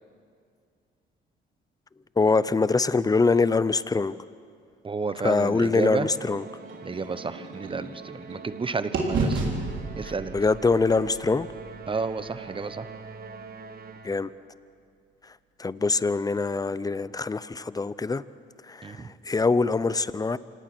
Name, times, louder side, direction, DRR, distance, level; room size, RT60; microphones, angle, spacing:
voice 1, 2.2-4.2 5.2-6.5 10.0-11.5 14.0-14.3 15.2-18.2 18.6-20.4, left 4 dB, 20° left, 17 dB, 0.6 m, -24 dB
voice 2, 4.8-6.1 6.8-9.4 10.0-10.4 11.9-12.9 18.8-19.1, right 4 dB, 25° right, 13 dB, 1.0 m, -31 dB
Musical instrument, 5.9-14.4, right 4 dB, 50° right, 1.4 m, -44 dB
sound 1, 6.2-8.6 8.9-12.9, right 3 dB, 75° right, 3.6 m, -33 dB
26.5 x 18.5 x 6.1 m, 2.3 s
cardioid pair, 90°, 20 cm